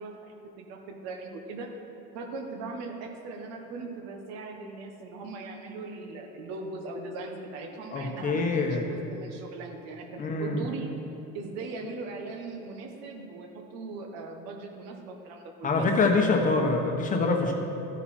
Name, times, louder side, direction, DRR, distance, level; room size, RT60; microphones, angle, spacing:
voice 1, 0.0-1.7 2.1-10.9 11.3-15.9, right 3 dB, 60° right, 3 dB, 1.5 m, -39 dB
voice 2, 7.9-8.8 10.2-10.6 15.6-17.5, left 3 dB, 25° left, 2 dB, 1.1 m, -25 dB
13.5 x 9.0 x 4.4 m, 2.9 s
cardioid pair, 150°, 29 cm